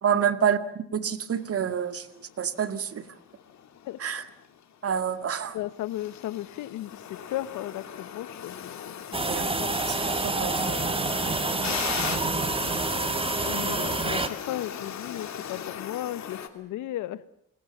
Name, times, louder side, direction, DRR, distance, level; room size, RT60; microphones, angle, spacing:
voice 1, 0.0-3.1 4.0-4.3 4.8-5.6 9.2-9.7 10.1-10.9 13.8-13.9, right 8 dB, 50° right, 10 dB, 2.0 m, -28 dB
sound 1, 1.4-16.5, left 9 dB, 65° left, 2.8 m, -39 dB
voice 2, 5.5-9.7 11.7-11.8 13.4-17.4, left 14 dB, 90° left, 16 dB, 1.1 m, -36 dB
sound 2, 9.1-14.3, right 3 dB, 20° right, 1.9 m, -28 dB
29.0 x 20.0 x 7.3 m, 0.73 s
cardioid pair, 90°, 30 cm